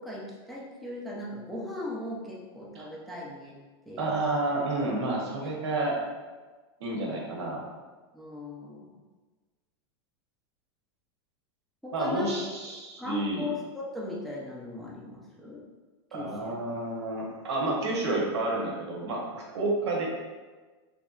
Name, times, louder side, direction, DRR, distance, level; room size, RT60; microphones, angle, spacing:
voice 1, 0.0-3.6 3.9-4.1 5.4-5.8 8.1-9.0 11.8-12.4 13.0-15.6 16.1-16.6, left 2 dB, ahead, -4 dB, 0.4 m, -38 dB
voice 2, 4.0-6.0 6.8-7.6 11.9-13.5 16.1-20.1, right 2 dB, 90° right, -2 dB, 0.9 m, -30 dB
3.2 x 2.7 x 2.4 m, 1.3 s
supercardioid pair, 140°, 14 cm